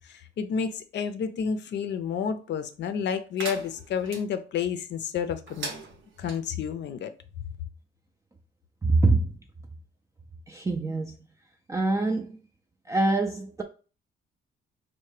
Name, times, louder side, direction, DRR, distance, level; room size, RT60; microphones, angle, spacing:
voice 1, 0.0-5.7 6.2-7.1, left 7 dB, 65° left, 0.5 m, -30 dB
sound 1, 3.4-4.2 5.5-6.4, right 4 dB, 75° right, 0.8 m, -38 dB
voice 2, 8.8-9.3 10.5-11.1 11.7-12.4 12.9-13.6, right 2 dB, 15° right, 0.4 m, -24 dB
4.4 x 2.2 x 3.2 m
cardioid pair, 90°, 20 cm